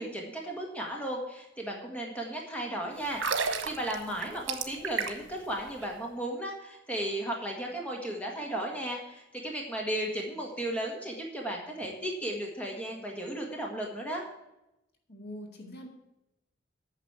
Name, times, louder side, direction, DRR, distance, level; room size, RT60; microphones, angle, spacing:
voice 1, 0.0-14.3, right 1 dB, 5° left, 0 dB, 1.8 m, -35 dB
sound 1, 3.1-5.4 5.7-5.9, right 5 dB, 90° right, 1.2 m, -32 dB
voice 2, 15.1-15.9, equal, 55° left, 2 dB, 2.0 m, -44 dB
9.2 x 6.6 x 8.0 m, 0.91 s
head